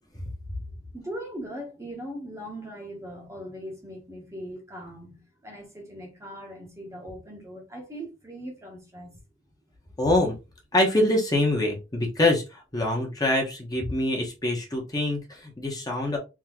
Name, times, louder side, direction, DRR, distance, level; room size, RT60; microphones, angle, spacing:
voice 1, 0.9-9.2, equal, 15° right, 0.9 m, -40 dB
voice 2, 10.0-10.3 10.7-16.2, left 1 dB, 20° left, 1.0 m, -25 dB
3.6 x 2.9 x 3.0 m
head